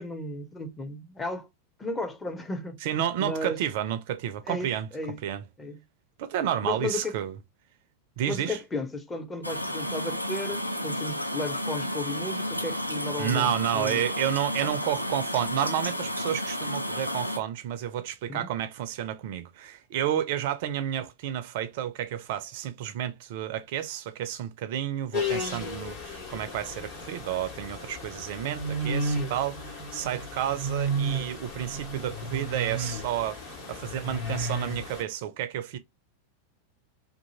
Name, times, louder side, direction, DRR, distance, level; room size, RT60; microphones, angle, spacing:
voice 1, 0.0-1.5 1.8-2.8 3.2-3.6 4.5-5.2 5.6-5.8 6.6-7.2 8.2-14.0 14.6-14.7 18.3-18.5, left 2 dB, 15° left, 0.6 m, -34 dB
voice 2, 2.8-4.9 5.2-5.4 6.2-7.3 8.2-8.6 13.2-35.8, right 11 dB, 50° right, 0.4 m, -31 dB
sound 1, 9.4-17.4, equal, 90° left, 0.3 m, -32 dB
sound 2, 25.1-35.0, right 1 dB, 55° left, 1.3 m, -33 dB
2.6 x 2.4 x 2.7 m
figure-of-eight pair, 90°, 0 cm